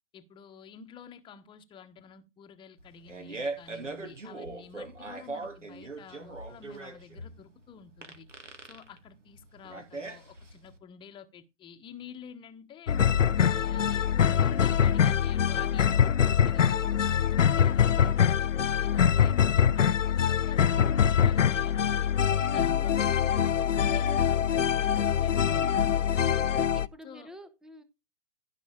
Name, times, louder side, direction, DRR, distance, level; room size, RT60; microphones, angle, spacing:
voice 1, 0.1-8.3 8.6-13.0 13.4-22.1 22.5-26.7 27.0-27.3, left 7 dB, 15° left, 1.0 m, -50 dB
Fart, 2.8-10.7, right 3 dB, 85° right, 2.7 m, -40 dB
sound 1, 12.9-26.9, left 8 dB, 90° left, 0.6 m, -24 dB
voice 2, 26.4-27.8, equal, ahead, 0.5 m, -49 dB
14.5 x 5.9 x 3.7 m
figure-of-eight pair, 125°, 36 cm